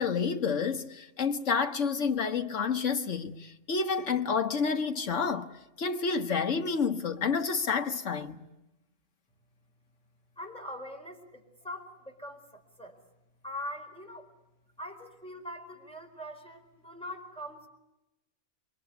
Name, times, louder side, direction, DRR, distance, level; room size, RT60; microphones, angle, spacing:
voice 1, 0.0-8.4, left 5 dB, 75° left, 1.8 m, -29 dB
voice 2, 10.4-13.0 13.4-14.3 14.8-17.7, left 1 dB, 5° left, 4.6 m, -42 dB
29.0 x 23.0 x 8.2 m
omnidirectional pair, 1.3 m